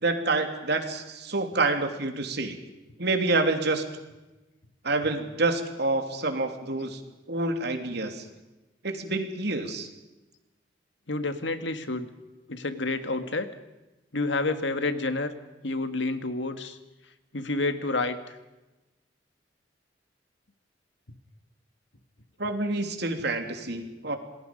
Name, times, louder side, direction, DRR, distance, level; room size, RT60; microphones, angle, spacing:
voice 1, 0.0-2.6 3.0-3.8 4.8-7.0 7.3-8.2 8.8-9.9 22.4-24.2, right 2 dB, 65° right, 6 dB, 3.1 m, -27 dB
voice 2, 11.1-12.1 12.5-13.5 14.1-15.3 15.6-16.8 17.3-18.2, left 2 dB, 80° left, 9 dB, 1.9 m, -29 dB
27.5 x 20.5 x 5.4 m, 1.1 s
head